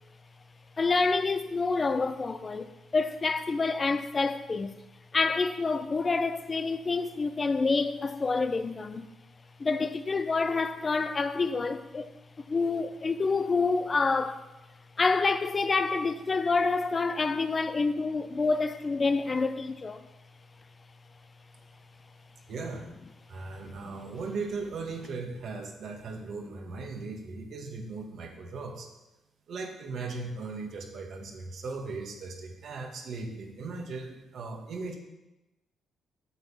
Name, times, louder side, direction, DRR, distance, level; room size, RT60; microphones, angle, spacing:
voice 1, 0.8-4.8 5.1-9.1 9.6-12.1 12.4-14.5 15.0-20.1, left 4 dB, 35° left, 0.6 m, -27 dB
voice 2, 22.5-22.9 23.3-28.9 29.5-34.9, right 3 dB, 65° right, 1.7 m, -38 dB
8.9 x 7.1 x 5.5 m
supercardioid pair, 70°, 0 cm